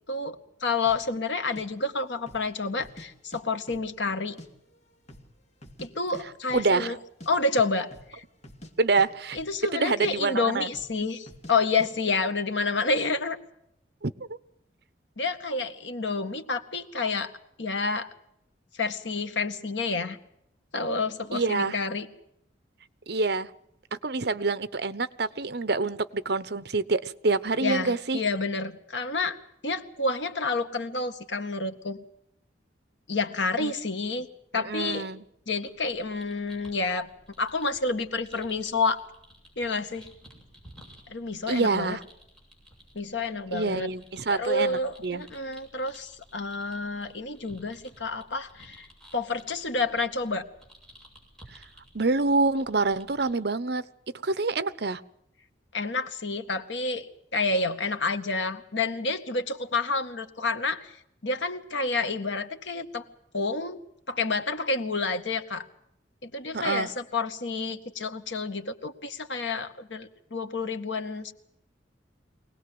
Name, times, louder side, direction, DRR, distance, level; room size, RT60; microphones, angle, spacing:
voice 1, 0.1-4.4 5.8-7.0 7.3-8.2 9.3-13.4 15.2-17.3 17.6-18.1 18.7-20.2 20.7-22.1 27.6-29.4 29.6-32.0 33.1-34.3 34.5-35.1 35.5-37.1 37.4-39.0 39.6-40.1 41.1-42.0 43.0-43.9 44.3-48.9 49.1-50.4 55.7-60.9 61.2-63.1 63.3-63.8 64.1-65.7 66.2-71.3, left 3 dB, 85° left, 8 dB, 1.9 m, -29 dB
sound 1, 0.9-1.1 1.6-1.7 2.2-2.5 2.8-3.4 3.7-4.5 4.7-4.8 5.1-5.9 6.1-6.2 6.5-6.7 7.0-7.3 7.8-8.1 8.4-8.7 9.0-9.8 10.0-10.1 10.7-11.0 11.3-11.5 11.8-11.9, left 1 dB, 40° left, 2.7 m, -47 dB
voice 2, 6.5-6.9 8.8-9.4 9.7-10.7 14.0-14.1 21.3-21.8 23.1-23.5 24.0-28.2 33.6-33.7 34.5-35.2 41.5-42.0 43.5-45.2 51.9-53.8 54.2-55.0 66.5-66.9, right 3 dB, 60° right, 15 dB, 1.0 m, -26 dB
sound 2, 35.7-53.3, equal, 5° left, 6.9 m, -55 dB
24.0 x 18.5 x 7.9 m, 0.76 s
head